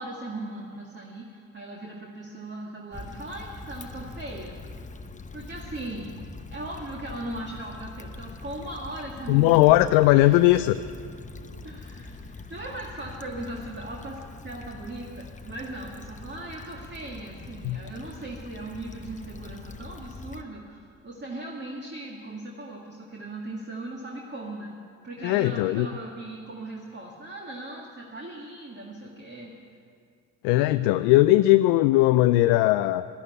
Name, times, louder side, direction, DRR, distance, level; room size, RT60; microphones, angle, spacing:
voice 1, 0.0-4.9 5.3-6.2 6.5-9.8 10.2-10.4 11.6-24.8 25.0-29.6, right 2 dB, 30° right, -1 dB, 2.1 m, -38 dB
Stream / Traffic noise roadway noise / Trickle dribble, 2.9-20.4, left 3 dB, 20° left, 0.8 m, -43 dB
voice 2, 9.3-10.8 17.6-17.8 25.2-25.9 30.4-33.1, left 16 dB, 70° left, 11 dB, 0.5 m, -19 dB
12.0 x 11.5 x 9.8 m, 2.3 s
hypercardioid pair, 55°, 39 cm